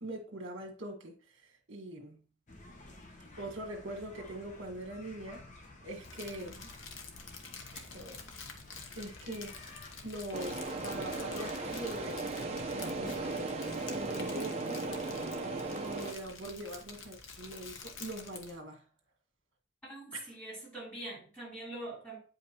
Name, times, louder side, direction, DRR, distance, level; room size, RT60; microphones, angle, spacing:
voice 1, 0.0-2.2 3.4-5.5 5.8-6.7 7.7-8.2 8.5-8.6 8.9-13.2 13.9-18.8 20.1-20.3, right 1 dB, 75° right, 1.7 m, -43 dB
sound 1, 2.5-13.4, left 2 dB, 40° left, 1.0 m, -53 dB
Crumpling crinkling, 6.0-18.6, left 5 dB, 75° left, 1.0 m, -49 dB
sound 2, 10.3-16.1, right 3 dB, 30° right, 0.9 m, -37 dB
voice 2, 19.8-22.2, right 1 dB, 10° left, 3.8 m, -43 dB
8.6 x 5.2 x 3.0 m
head